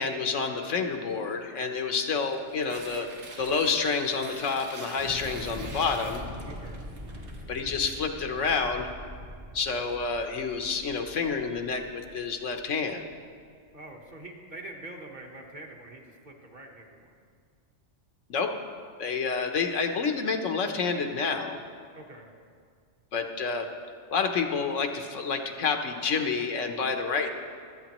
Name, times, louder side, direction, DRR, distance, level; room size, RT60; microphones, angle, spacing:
voice 1, 0.0-3.1 3.4-6.2 7.5-8.9 9.5-13.1 18.3-18.5 19.0-21.6 23.1-23.7 24.1-27.3, left 5 dB, 85° left, 5 dB, 1.3 m, -29 dB
Tearing, 2.2-8.5, right 2 dB, 70° right, 1.6 m, -47 dB
Thunder / Explosion, 4.9-13.1, equal, 25° right, 0.9 m, -43 dB
voice 2, 6.5-6.8 13.7-17.1 21.9-22.3, right 2 dB, 40° right, 0 dB, 1.3 m, -45 dB
24.5 x 8.3 x 3.0 m, 2.1 s
omnidirectional pair, 1.2 m